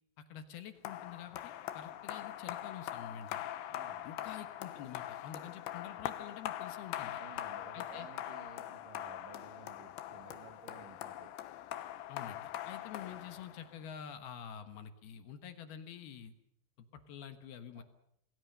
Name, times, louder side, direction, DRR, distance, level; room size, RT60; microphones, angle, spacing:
voice 1, 0.3-3.4 4.0-7.2 7.7-8.1 12.1-16.3 16.8-17.8, left 8 dB, 65° left, 9 dB, 3.0 m, -48 dB
sound 1, 0.8-13.9, left 13 dB, 90° left, 3.4 m, -42 dB
voice 2, 3.7-4.1 7.1-11.3 17.8-17.9, right 5 dB, 60° right, 7 dB, 3.0 m, -55 dB
27.5 x 19.5 x 6.8 m, 0.74 s
omnidirectional pair, 5.1 m